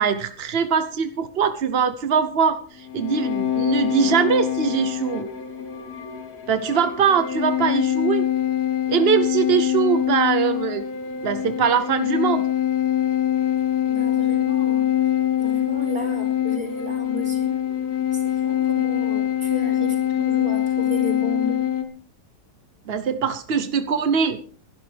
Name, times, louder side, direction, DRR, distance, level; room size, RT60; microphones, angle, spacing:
voice 1, 0.0-5.3 6.5-8.3 8.9-10.8 11.2-12.4 22.9-24.4, right 7 dB, 50° right, 10 dB, 0.7 m, -22 dB
sound 1, 2.8-21.8, left 11 dB, 40° left, 1.6 m, -24 dB
voice 2, 13.8-15.1 15.4-17.6 18.1-21.6, left 1 dB, 30° right, 3 dB, 4.9 m, -33 dB
21.0 x 12.0 x 3.4 m, 0.43 s
omnidirectional pair, 2.0 m